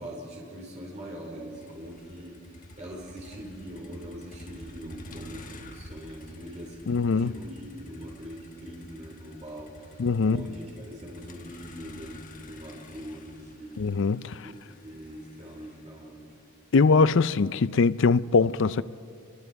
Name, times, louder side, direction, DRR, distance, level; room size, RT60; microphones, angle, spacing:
voice 1, 0.0-13.9 14.4-14.6 14.8-16.2, equal, 35° right, 4.7 m, -42 dB
Motor vehicle (road), 1.5-17.7, left 1 dB, 40° left, 1.4 m, -49 dB
voice 2, 6.9-7.3 10.0-10.5 13.8-14.4 16.7-18.8, left 4 dB, 65° left, 0.5 m, -22 dB
28.5 x 24.5 x 4.7 m
head